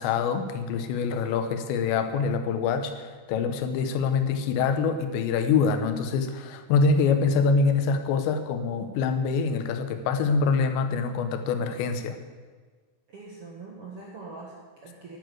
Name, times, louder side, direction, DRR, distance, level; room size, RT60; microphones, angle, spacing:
voice 1, 0.0-12.2, left 5 dB, 85° left, 8 dB, 3.2 m, -25 dB
voice 2, 13.1-15.2, right 3 dB, 60° right, -3 dB, 1.5 m, -43 dB
11.0 x 9.5 x 7.8 m, 1.5 s
omnidirectional pair, 5.0 m